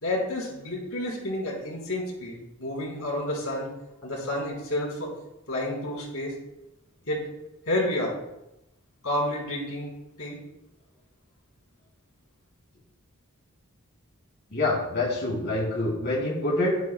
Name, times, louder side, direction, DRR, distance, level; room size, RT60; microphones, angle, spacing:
voice 1, 0.0-3.7 4.0-5.1 5.5-6.4 7.1-7.3 7.7-8.1 9.0-9.9 10.2-10.4, left 1 dB, 75° left, -3 dB, 3.7 m, -30 dB
voice 2, 14.5-16.8, left 2 dB, 50° left, -5 dB, 3.2 m, -26 dB
12.5 x 9.0 x 2.3 m, 0.92 s
head